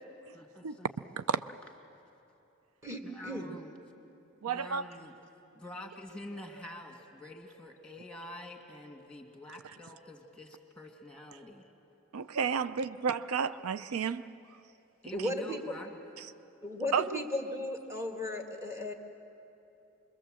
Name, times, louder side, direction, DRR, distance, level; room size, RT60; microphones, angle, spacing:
voice 1, 0.3-1.1 3.0-3.8 4.5-5.1 5.5-11.7 15.0-16.0, left 1 dB, 5° left, 3 dB, 2.0 m, -47 dB
voice 2, 2.8-3.5 15.1-15.6 16.6-18.9, left 1 dB, 15° right, 3 dB, 1.8 m, -35 dB
voice 3, 4.4-4.8 12.1-14.3 16.9-17.1, right 6 dB, 80° right, 14 dB, 0.5 m, -31 dB
25.5 x 21.5 x 7.6 m, 2.8 s
head